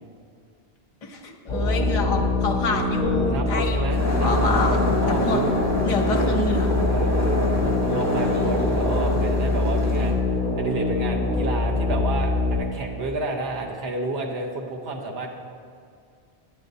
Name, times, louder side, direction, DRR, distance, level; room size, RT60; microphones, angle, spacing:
voice 1, 1.0-4.8 5.0-5.4 5.8-6.7, left 3 dB, 40° left, 1 dB, 0.8 m, -27 dB
sound 1, 1.5-12.6, left 2 dB, 45° right, 2.2 m, -24 dB
voice 2, 3.3-5.5 6.1-6.4 6.9-10.2 10.6-15.3, right 2 dB, 70° right, 1 dB, 1.1 m, -31 dB
sound 2, 3.9-10.1, equal, 15° right, 1.3 m, -27 dB
10.0 x 9.3 x 2.7 m, 2.3 s
omnidirectional pair, 1.1 m